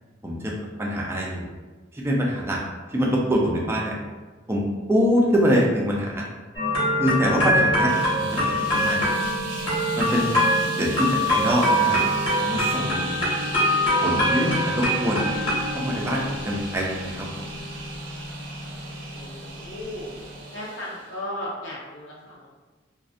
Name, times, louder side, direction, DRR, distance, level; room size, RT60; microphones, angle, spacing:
voice 1, 0.2-0.5 0.8-1.5 1.9-2.6 2.9-4.0 4.5-4.6 4.9-6.3 7.0-9.0 10.0-10.3 10.8-12.0 12.4-13.1 14.0-15.3 15.7-17.3, equal, 15° right, -3 dB, 0.4 m, -24 dB
sound 1, 6.5-20.4, equal, 25° left, 0.8 m, -24 dB
sound 2, 7.9-21.2, right 3 dB, 70° right, 0.5 m, -38 dB
voice 2, 10.4-10.7 19.1-20.1 20.5-22.5, left 1 dB, 75° left, -5 dB, 0.7 m, -36 dB
2.5 x 2.0 x 2.4 m, 1.3 s
head